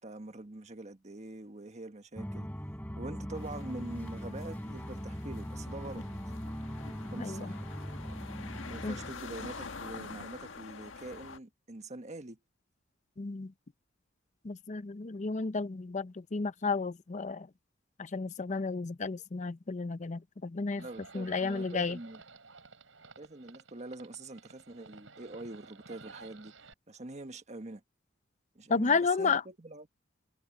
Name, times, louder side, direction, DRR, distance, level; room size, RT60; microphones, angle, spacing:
voice 1, 0.0-2.5 3.0-6.0 7.1-7.6 8.7-12.4 20.7-22.2 23.2-26.5 26.9-27.8 28.5-29.9, right 2 dB, 35° right, 1.5 m, -44 dB
sound 1, 2.2-9.1, equal, 10° left, 4.4 m, -40 dB
sound 2, 3.3-11.4, left 4 dB, 85° left, 1.6 m, -47 dB
voice 2, 7.2-7.5 8.8-9.0 13.2-13.5 14.4-17.5 18.0-20.9 21.1-22.0 28.7-29.4, left 4 dB, 40° left, 0.6 m, -32 dB
Livestock farm animals working animals, 20.8-26.7, right 4 dB, 85° right, 5.9 m, -53 dB
head